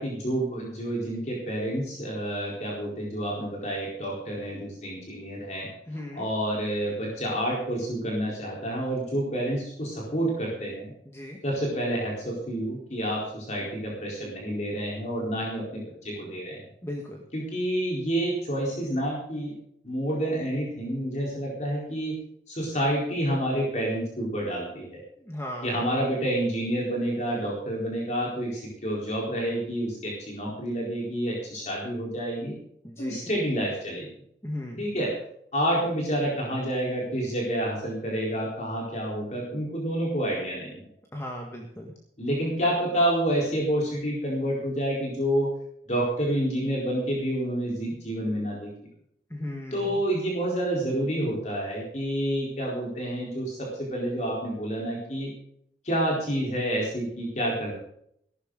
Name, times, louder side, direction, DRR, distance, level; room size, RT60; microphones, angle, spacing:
voice 1, 0.0-10.9 11.4-16.6 17.3-19.5 19.8-22.2 22.5-25.0 25.6-32.6 33.0-34.1 34.8-35.1 35.5-40.8 42.2-45.5 45.9-48.7 49.7-55.3 55.8-57.7, right 1 dB, 40° left, -3 dB, 4.2 m, -29 dB
voice 2, 5.9-6.2 11.0-11.4 16.8-17.2 25.2-25.8 32.8-33.3 34.4-34.9 41.1-41.9 49.3-50.0, left 1 dB, 15° left, 0 dB, 1.8 m, -36 dB
17.0 x 12.5 x 4.0 m, 0.69 s
head